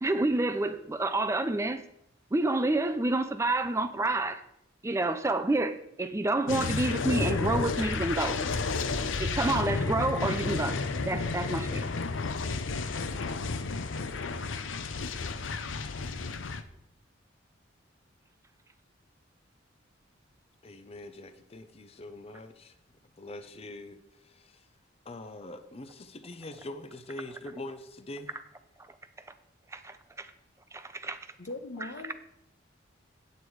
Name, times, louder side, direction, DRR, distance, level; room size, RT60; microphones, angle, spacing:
voice 1, 0.0-1.8 2.3-4.4 4.8-8.4 9.2-11.9 29.7-30.3 30.7-31.2 31.8-32.1, right 2 dB, 15° right, 10 dB, 0.4 m, -29 dB
sound 1, 6.5-16.6, left 4 dB, 85° left, 0.7 m, -32 dB
voice 2, 20.6-22.8 23.2-24.7 25.0-28.3, left 1 dB, 30° left, 9 dB, 0.6 m, -43 dB
voice 3, 31.4-32.1, left 2 dB, 60° left, 8 dB, 1.1 m, -39 dB
8.7 x 8.1 x 4.7 m, 0.78 s
head